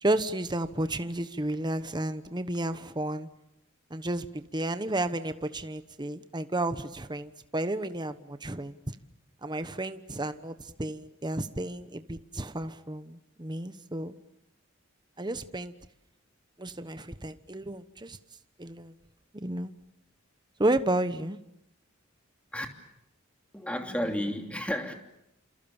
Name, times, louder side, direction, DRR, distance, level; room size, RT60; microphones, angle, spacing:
voice 1, 0.0-3.3 3.9-9.0 9.4-14.1 15.2-15.7 16.6-18.2 18.6-18.9 19.4-19.7 20.6-21.4, right 1 dB, 20° right, 1.1 m, -32 dB
voice 2, 23.5-24.9, equal, 5° left, 2.9 m, -32 dB
29.5 x 27.5 x 7.2 m
head